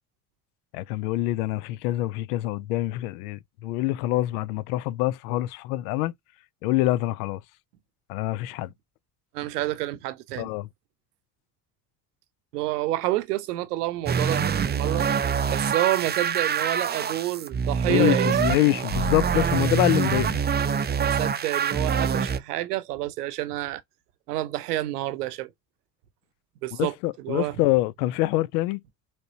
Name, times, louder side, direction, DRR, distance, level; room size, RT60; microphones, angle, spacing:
voice 1, 0.7-6.1 6.6-7.4 8.1-8.7 10.4-10.7 17.9-20.4 26.8-28.8, left 17 dB, 70° left, 0.6 m, -25 dB
voice 2, 9.3-10.5 12.5-15.1 15.5-18.4 21.0-23.8 24.3-25.5 26.6-27.6, right 16 dB, 80° right, 0.8 m, -29 dB
sound 1, 14.1-22.4, right 7 dB, 20° right, 0.5 m, -25 dB
5.1 x 3.5 x 2.8 m
hypercardioid pair, 55°, 46 cm